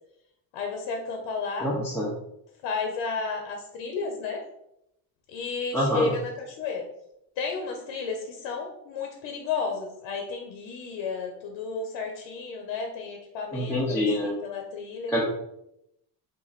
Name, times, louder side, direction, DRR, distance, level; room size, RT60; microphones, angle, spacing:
voice 1, 0.5-1.7 2.6-4.4 5.3-6.9 7.4-15.1, left 4 dB, 85° left, 3 dB, 0.7 m, -32 dB
voice 2, 1.6-2.1 5.7-6.1 13.5-14.3 15.1-15.2, left 1 dB, 5° left, -6 dB, 0.5 m, -26 dB
3.0 x 2.5 x 3.9 m, 0.81 s
cardioid pair, 150°, 43 cm